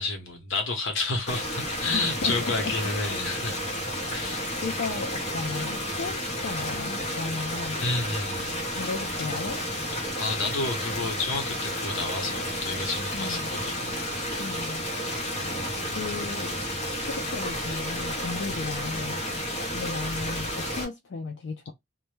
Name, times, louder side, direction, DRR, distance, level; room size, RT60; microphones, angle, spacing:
voice 1, 0.0-3.6 4.1-4.4 7.8-8.7 10.2-14.6 15.3-16.0, left 3 dB, 80° left, 0.9 m, -31 dB
sound 1, 1.3-20.8, equal, 30° left, 0.8 m, -31 dB
voice 2, 1.9-2.7 4.2-7.8 8.7-9.6 13.1-13.5 14.4-14.8 15.9-16.6 17.0-19.2 19.7-21.7, left 4 dB, 60° left, 0.4 m, -35 dB
2.2 x 2.1 x 3.0 m
head